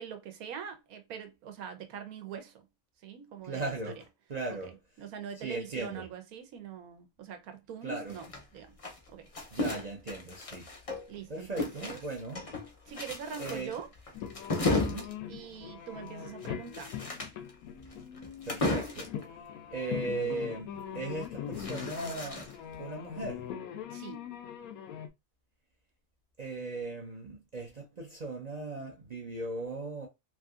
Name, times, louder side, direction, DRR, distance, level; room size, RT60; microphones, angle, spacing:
voice 1, 0.0-2.6 3.0-3.7 5.0-8.3 8.5-8.8 9.1-9.3 11.1-12.0 12.9-13.9 15.3-16.9 23.9-24.3, right 7 dB, 85° right, 1.2 m, -43 dB
voice 2, 3.4-4.8 5.4-6.1 7.8-8.2 9.5-10.7 11.3-12.5 13.4-13.7 14.7-15.1 18.4-19.1 19.7-22.5 22.8-23.5 26.4-30.1, right 2 dB, 50° right, 0.5 m, -38 dB
sound 1, 8.1-11.2 11.6-19.2 21.1-22.7, left 2 dB, 40° left, 0.5 m, -35 dB
sound 2, 14.2-25.1, left 9 dB, 85° left, 1.1 m, -41 dB
3.3 x 2.6 x 2.4 m
omnidirectional pair, 1.5 m